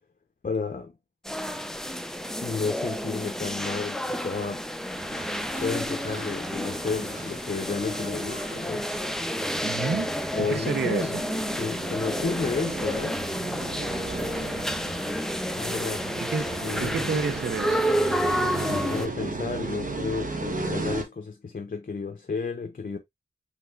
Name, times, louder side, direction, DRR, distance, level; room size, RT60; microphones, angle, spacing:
voice 1, 0.4-0.9 2.4-4.7 5.6-8.9 10.3-11.2 11.5-13.2 15.6-16.1 16.6-17.2 18.6-23.0, left 4 dB, 50° left, 0.7 m, -32 dB
sound 1, 1.2-19.1, equal, ahead, 0.5 m, -30 dB
sound 2, 4.9-21.0, right 3 dB, 45° right, 1.1 m, -36 dB
voice 2, 9.6-10.1 10.4-11.2 16.2-16.5 16.8-17.9, right 5 dB, 65° right, 0.6 m, -29 dB
5.7 x 3.3 x 2.4 m
wide cardioid pair, 50°, 19 cm